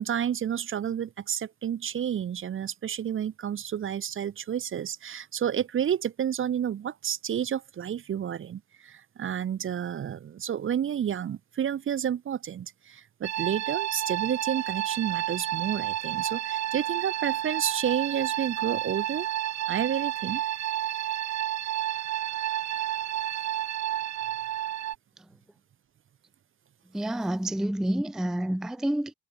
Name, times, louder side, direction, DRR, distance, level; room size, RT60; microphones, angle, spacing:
voice 1, 0.0-19.3 19.7-20.4, right 9 dB, 45° right, 0.7 m, -30 dB
sound 1, 13.2-25.0, right 12 dB, 65° right, 1.1 m, -31 dB
voice 2, 26.9-29.1, right 1 dB, ahead, 0.5 m, -28 dB
cardioid pair, 90°, 30 cm